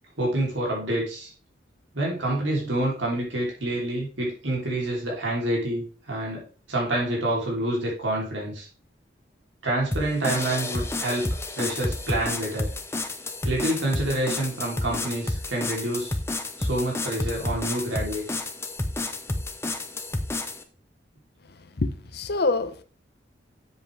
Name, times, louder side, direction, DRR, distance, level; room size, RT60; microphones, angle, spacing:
voice 1, 0.2-1.3 1.9-8.7 9.6-11.3 11.6-12.7 13.4-16.2 16.6-18.4, right 1 dB, 80° right, 3.3 m, -27 dB
sound 1, 9.9-20.6, left 2 dB, 15° left, 0.7 m, -30 dB
voice 2, 21.8-22.8, left 3 dB, 55° left, 0.7 m, -26 dB
7.7 x 7.4 x 3.4 m
head